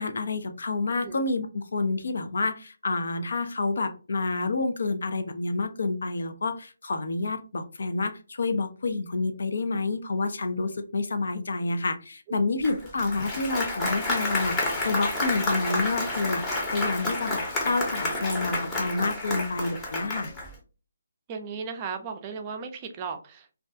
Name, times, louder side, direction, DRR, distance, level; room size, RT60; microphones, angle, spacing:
voice 1, 0.0-20.3, left 3 dB, 65° left, 8 dB, 0.4 m, -29 dB
Applause, 12.6-20.5, left 2 dB, 15° left, 0.7 m, -30 dB
voice 2, 21.3-23.5, right 5 dB, 25° right, 5 dB, 0.4 m, -36 dB
2.3 x 2.2 x 2.6 m, 0.34 s
hypercardioid pair, 160°, 0 cm